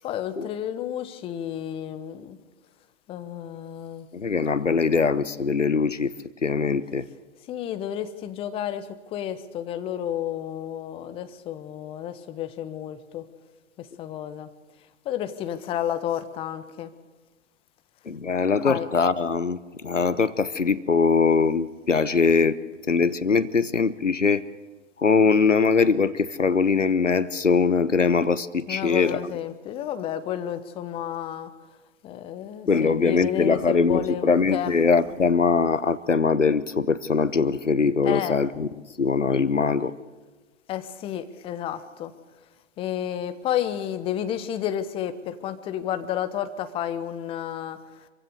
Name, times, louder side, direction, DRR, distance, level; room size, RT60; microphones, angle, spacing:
voice 1, 0.0-2.4 3.1-4.1 7.5-13.2 13.8-14.5 15.0-16.9 18.6-18.9 28.7-31.5 32.0-34.8 38.0-38.4 40.7-42.1 42.8-47.8, left 10 dB, 15° left, 12 dB, 1.0 m, -31 dB
voice 2, 4.1-6.1 6.4-7.0 18.1-19.6 19.8-22.6 22.9-24.4 25.0-29.3 32.7-38.7 39.0-39.9, left 5 dB, 80° left, 15 dB, 1.1 m, -22 dB
26.0 x 16.0 x 6.7 m, 1.3 s
figure-of-eight pair, 120°, 36 cm